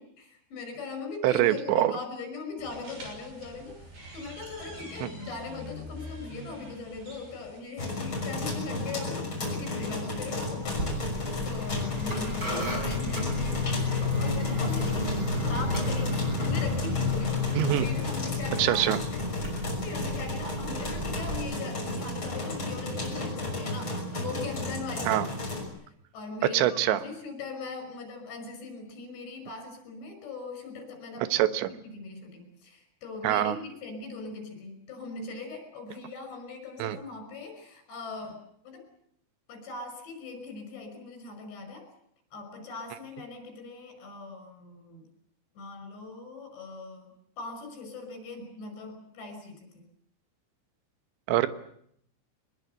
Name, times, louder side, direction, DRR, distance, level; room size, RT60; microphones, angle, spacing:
voice 1, 0.0-3.8 4.1-10.7 11.4-19.2 19.7-25.3 26.1-31.3 31.7-38.4 38.6-38.8 39.5-41.9 42.3-45.1 45.6-49.8, left 3 dB, 70° left, 6 dB, 7.7 m, -40 dB
voice 2, 1.2-1.9 5.0-5.1 17.5-17.9 18.6-19.0 25.1-25.3 26.5-27.0 31.3-31.7 33.2-33.6 36.8-37.0 51.3-51.5, right 13 dB, 80° right, 11 dB, 3.4 m, -24 dB
sound 1, 2.6-7.6, equal, 60° right, 8.3 m, -45 dB
sound 2, 7.8-25.7, left 3 dB, 25° left, 6.7 m, -31 dB
sound 3, 10.6-21.3, right 2 dB, 20° right, 6.9 m, -38 dB
23.5 x 21.5 x 8.0 m, 0.70 s
omnidirectional pair, 5.3 m